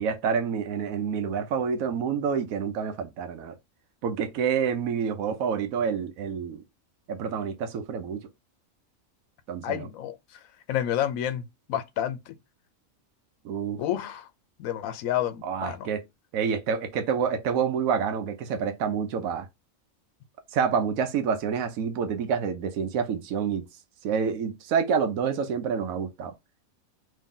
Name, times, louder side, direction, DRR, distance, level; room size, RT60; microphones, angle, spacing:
voice 1, 0.0-3.6 4.0-6.6 7.1-8.3 9.5-9.9 13.4-13.8 15.4-16.0 16.3-19.5 20.5-23.6 24.0-26.3, right 6 dB, 85° right, 1.1 m, -28 dB
voice 2, 9.6-10.2 10.7-12.3 13.8-14.3 14.6-15.9, left 11 dB, 80° left, 1.0 m, -29 dB
3.2 x 2.7 x 3.7 m
omnidirectional pair, 1.4 m